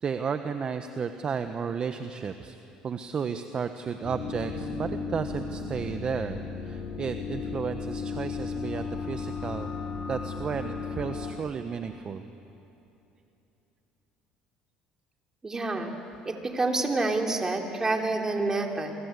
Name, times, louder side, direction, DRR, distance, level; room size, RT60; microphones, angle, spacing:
voice 1, 0.0-2.6 2.8-9.7 10.1-12.2, right 6 dB, 40° right, 8 dB, 1.2 m, -33 dB
sound 1, 4.0-11.3, left 4 dB, 55° left, 5.4 m, -35 dB
voice 2, 15.4-15.9 16.3-19.0, right 2 dB, 20° right, 2 dB, 3.6 m, -28 dB
28.5 x 24.0 x 8.4 m, 2.9 s
supercardioid pair, 85°, 3 cm